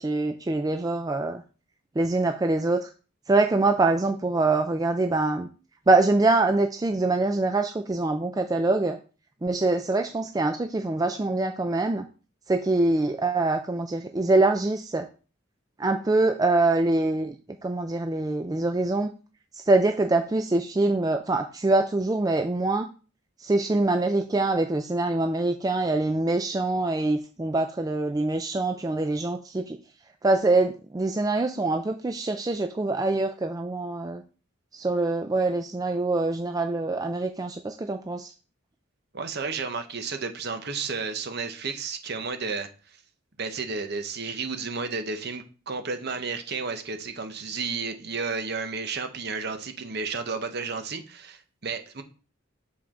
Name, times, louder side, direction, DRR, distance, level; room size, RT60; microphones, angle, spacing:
voice 1, 0.0-1.4 2.0-2.9 3.3-5.5 5.9-9.0 9.4-12.0 12.5-15.1 15.8-17.4 17.6-19.1 19.5-22.9 23.4-29.8 30.2-34.2 34.7-38.3, right 2 dB, 15° right, 0.3 m, -24 dB
voice 2, 39.1-42.7 43.4-52.0, right 4 dB, 50° right, 0.9 m, -32 dB
7.2 x 4.4 x 3.7 m
head